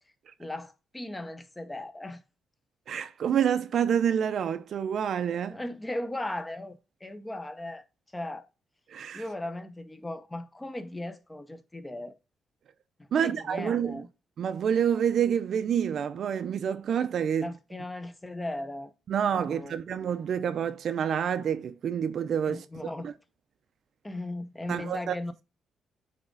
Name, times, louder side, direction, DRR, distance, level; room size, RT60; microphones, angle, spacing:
voice 1, 0.4-2.2 5.5-7.8 8.1-8.5 9.1-12.2 13.0-14.1 17.4-18.9 19.3-19.8 22.5-23.1 24.0-25.4, left 1 dB, 15° left, 0.9 m, -37 dB
voice 2, 2.9-5.6 8.9-9.2 13.1-14.0 14.4-17.5 19.1-22.6 23.0-23.1 24.7-25.1, right 8 dB, 60° right, 0.6 m, -28 dB
8.9 x 3.6 x 3.8 m
cardioid pair, 100°, 0 cm